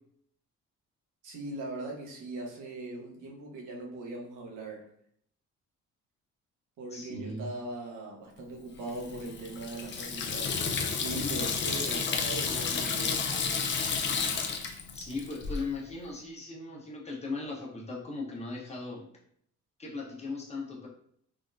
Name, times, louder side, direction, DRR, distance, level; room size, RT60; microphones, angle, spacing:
voice 1, 1.2-4.8 6.8-10.5 11.0-13.2, right 2 dB, 85° right, -2 dB, 0.9 m, -40 dB
voice 2, 6.9-7.5 15.0-19.1 19.8-20.9, left 3 dB, 20° left, -4 dB, 1.0 m, -38 dB
Water tap faucet / Sink (filling or washing), 8.9-15.6, left 5 dB, 40° left, 0.4 m, -31 dB
3.6 x 2.1 x 2.5 m, 0.66 s
cardioid pair, 90°, 30 cm